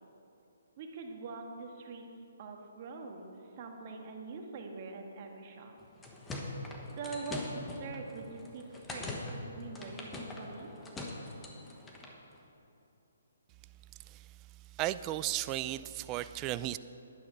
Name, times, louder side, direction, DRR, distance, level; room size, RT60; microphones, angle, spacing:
voice 1, 0.8-2.0 2.4-5.8 7.0-10.7, right 4 dB, 40° right, 2 dB, 1.6 m, -44 dB
sound 1, 5.8-12.2, left 2 dB, 10° left, 1.3 m, -42 dB
voice 2, 14.8-16.8, right 15 dB, 25° right, 14 dB, 0.4 m, -34 dB
10.5 x 10.5 x 5.6 m, 2.9 s
hypercardioid pair, 145°, 0 cm